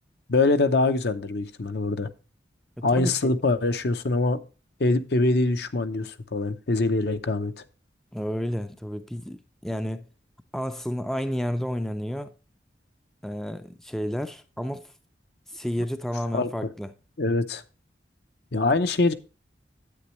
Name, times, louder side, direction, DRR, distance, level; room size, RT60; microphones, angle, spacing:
voice 1, 0.3-2.1 2.8-4.4 4.8-7.5 16.3-16.5 17.2-17.6 18.5-19.1, left 2 dB, 60° left, 0.7 m, -23 dB
voice 2, 2.8-3.3 8.1-10.1 10.5-12.3 13.2-14.9 15.5-16.9, equal, ahead, 0.4 m, -31 dB
10.0 x 8.5 x 3.1 m
head